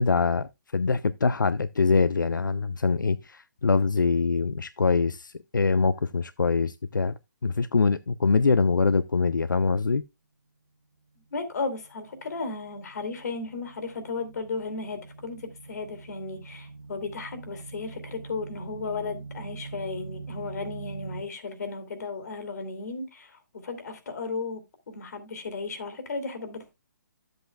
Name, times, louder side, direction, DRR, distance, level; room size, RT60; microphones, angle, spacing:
voice 1, 0.0-7.1 7.4-10.0, left 4 dB, 90° left, 0.4 m, -24 dB
voice 2, 11.3-24.6 24.9-26.7, left 4 dB, 60° left, 2.4 m, -35 dB
sound 1, 11.6-21.2, right 4 dB, 85° right, 1.2 m, -43 dB
11.5 x 7.9 x 2.2 m
figure-of-eight pair, 140°, 10 cm